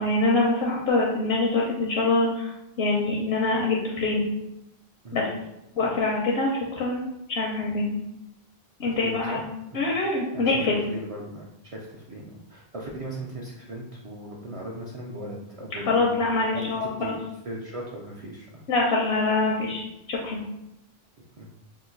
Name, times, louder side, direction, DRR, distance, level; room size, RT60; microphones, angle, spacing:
voice 1, 0.0-2.5 2.8-4.3 5.1-5.3 5.8-8.0 8.8-9.4 9.7-10.8 15.9-17.2 18.7-19.8 20.1-20.4, left 2 dB, 90° left, -2 dB, 0.9 m, -24 dB
voice 2, 8.8-9.5 9.7-9.9 10.3-10.6 10.9-16.2 16.5-17.2 17.4-18.6 21.4-21.5, right 1 dB, 50° right, -3 dB, 0.4 m, -38 dB
2.9 x 2.3 x 3.7 m, 0.86 s
omnidirectional pair, 1.0 m